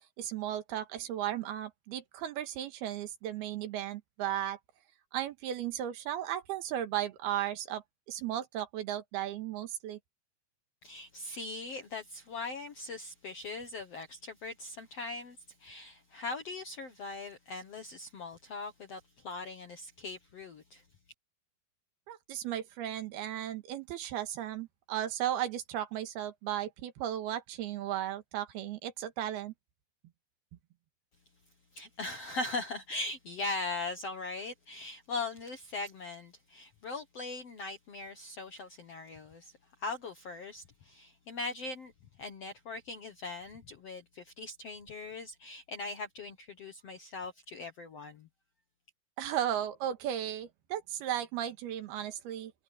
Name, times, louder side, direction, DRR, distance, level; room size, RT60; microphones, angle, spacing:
voice 1, 0.2-4.6 5.1-10.0 22.1-29.5 49.2-52.5, right 11 dB, 75° right, 3.3 m, -35 dB
voice 2, 10.8-20.8 31.7-39.5 39.8-41.9 42.2-48.3, left 3 dB, 65° left, 1.6 m, -40 dB
omnidirectional pair, 4.7 m